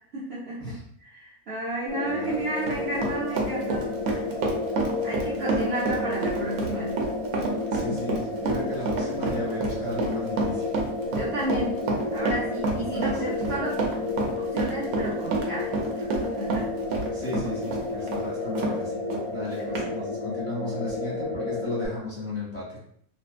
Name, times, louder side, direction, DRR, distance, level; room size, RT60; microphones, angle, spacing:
voice 1, 0.1-0.6 1.0-4.2 5.0-7.0 11.1-11.8 12.1-13.8 14.3-16.7 19.5-19.7 20.1-20.2, right 1 dB, 55° right, -8 dB, 0.7 m, -32 dB
sound 1, 1.9-21.9, left 2 dB, 25° right, 0.9 m, -31 dB
voice 2, 2.1-2.4 7.7-10.7 12.8-13.1 17.1-19.0 19.3-22.8, left 2 dB, 25° left, -8 dB, 1.2 m, -35 dB
Run, 2.1-18.8 19.1-19.2 19.8-19.9, right 3 dB, 85° right, 1.1 m, -29 dB
2.6 x 2.6 x 2.3 m, 0.66 s
omnidirectional pair, 1.5 m